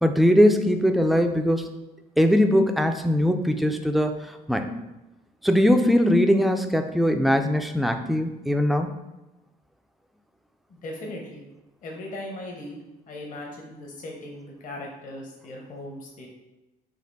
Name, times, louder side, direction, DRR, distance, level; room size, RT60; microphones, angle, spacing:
voice 1, 0.0-1.7 2.2-4.2 4.5-4.7 5.4-8.9, equal, ahead, 6 dB, 0.3 m, -20 dB
voice 2, 10.7-11.4 11.8-12.8 13.1-16.3, left 1 dB, 50° left, -1 dB, 1.0 m, -38 dB
4.2 x 2.8 x 4.0 m, 1.0 s
cardioid pair, 110°, 17 cm